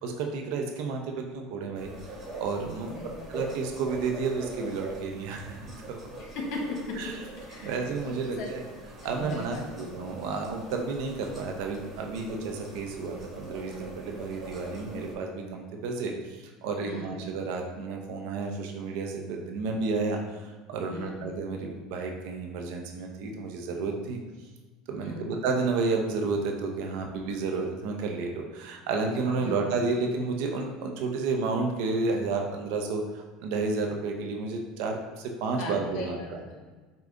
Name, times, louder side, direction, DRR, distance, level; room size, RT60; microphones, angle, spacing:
voice 1, 0.0-1.9 2.4-5.6 5.9-6.0 7.0-7.1 7.6-8.6 9.0-24.2 24.9-36.2, right 4 dB, 70° right, 2 dB, 0.6 m, -31 dB
sound 1, 1.7-15.1, right 2 dB, 20° right, 1.4 m, -43 dB
voice 2, 2.9-3.3 6.2-7.1 7.5-8.5 9.0-9.6 16.8-17.2 20.9-21.2 25.0-25.3 29.4-29.6 35.6-36.8, left 2 dB, 65° left, 0 dB, 1.1 m, -38 dB
5.2 x 2.3 x 3.8 m, 1.3 s
hypercardioid pair, 85°, 0 cm